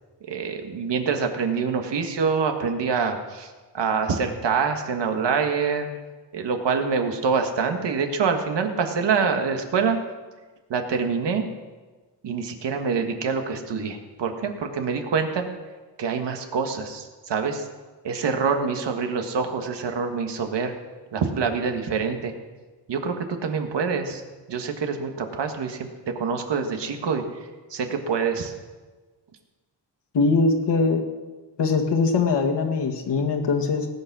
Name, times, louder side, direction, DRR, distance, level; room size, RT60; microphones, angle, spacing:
voice 1, 0.2-5.9 6.3-10.0 10.7-11.4 12.2-15.4 16.0-17.7 18.0-20.7 21.1-22.3 22.9-24.2 24.5-27.2 27.7-28.5, right 5 dB, 75° right, 5 dB, 1.8 m, -25 dB
voice 2, 30.1-31.0 31.6-33.9, left 4 dB, 75° left, 3 dB, 2.0 m, -21 dB
19.0 x 8.7 x 6.2 m, 1.3 s
wide cardioid pair, 140°, 42 cm